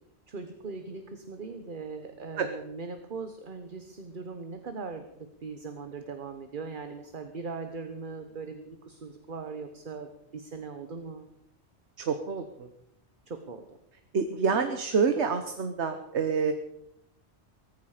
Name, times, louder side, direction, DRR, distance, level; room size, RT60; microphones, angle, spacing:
voice 1, 0.3-11.3 13.3-13.7 14.5-14.6, right 4 dB, 50° right, 7 dB, 1.3 m, -40 dB
voice 2, 12.0-12.7 14.1-16.5, right 5 dB, 75° right, 8 dB, 1.3 m, -27 dB
18.0 x 14.5 x 5.0 m, 0.81 s
omnidirectional pair, 1.2 m